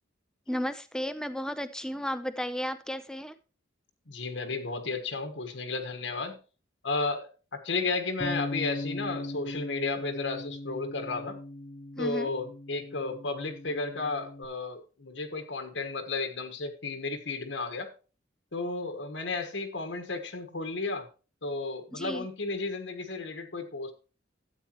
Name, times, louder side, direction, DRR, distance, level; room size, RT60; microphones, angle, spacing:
voice 1, 0.5-3.4 12.0-12.3 21.9-22.3, equal, 5° left, 12 dB, 0.6 m, -33 dB
voice 2, 4.1-6.4 6.8-11.4 12.0-17.9 18.5-21.1 21.4-23.9, left 3 dB, 80° left, 6 dB, 1.4 m, -33 dB
Bass guitar, 8.2-14.5, left 2 dB, 20° left, 0.9 m, -38 dB
12.5 x 8.6 x 3.0 m, 0.33 s
head